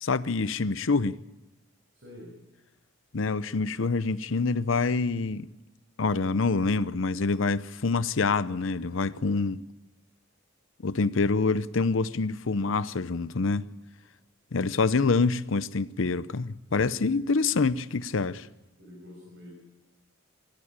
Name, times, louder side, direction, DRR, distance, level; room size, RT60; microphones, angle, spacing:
voice 1, 0.0-1.2 3.1-5.5 6.0-9.6 10.8-13.7 14.5-18.5, left 4 dB, 70° left, 0.7 m, -26 dB
voice 2, 1.9-2.3 18.8-19.6, left 1 dB, 60° right, 6.5 m, -47 dB
23.5 x 16.0 x 8.8 m
head